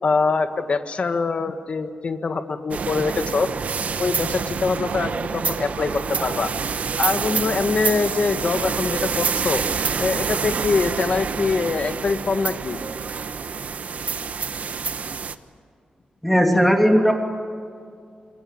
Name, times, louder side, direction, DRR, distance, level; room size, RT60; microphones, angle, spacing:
voice 1, 0.0-3.5 4.0-6.5 7.0-9.6 10.0-12.8, left 4 dB, 50° left, 9 dB, 1.7 m, -24 dB
sound 1, 2.7-15.4, right 6 dB, 60° right, 1.1 m, -27 dB
voice 2, 16.2-17.1, equal, 5° left, 3 dB, 2.7 m, -16 dB
27.0 x 23.5 x 8.8 m, 2.3 s
wide cardioid pair, 130°, 3 cm